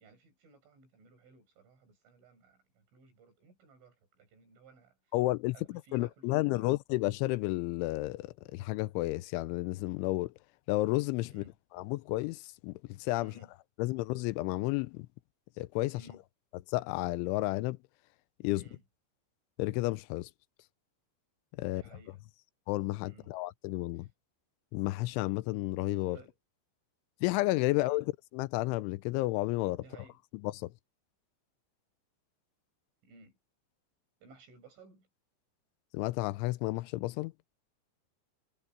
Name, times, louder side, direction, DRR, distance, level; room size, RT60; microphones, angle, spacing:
voice 1, 0.0-5.0 5.5-6.7 11.3-11.6 13.2-13.5 15.9-16.2 18.6-18.8 21.7-22.2 23.0-23.3 24.0-24.1 26.1-26.4 27.7-28.1 29.8-30.2 33.0-33.4 34.2-35.1, right 4 dB, 90° right, 9.0 m, -58 dB
voice 2, 5.1-10.3 10.7-11.4 11.7-13.3 13.8-15.1 15.6-16.0 16.7-17.8 18.4-18.7 19.6-20.3 21.6-21.8 22.7-24.1 24.7-26.2 27.2-29.8 30.4-30.7 35.9-37.3, left 19 dB, 85° left, 3.0 m, -32 dB
omnidirectional pair, 5.4 m